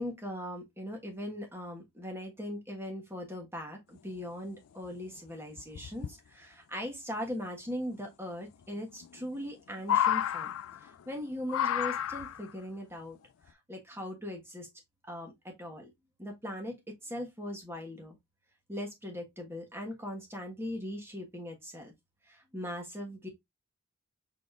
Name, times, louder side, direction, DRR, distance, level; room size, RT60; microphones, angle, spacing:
voice 1, 0.0-10.5 10.8-13.2 13.5-14.7 15.1-15.9 16.2-18.2 18.7-21.9 22.2-23.3, left 1 dB, 10° right, 1.2 m, -40 dB
sound 1, 4.5-4.6 4.9-5.0 5.6-6.1 7.7-7.8 9.0-9.5 9.8-11.0 11.5-12.5 13.5-13.6, left 10 dB, 70° left, 0.3 m, -31 dB
4.9 x 4.0 x 2.4 m
head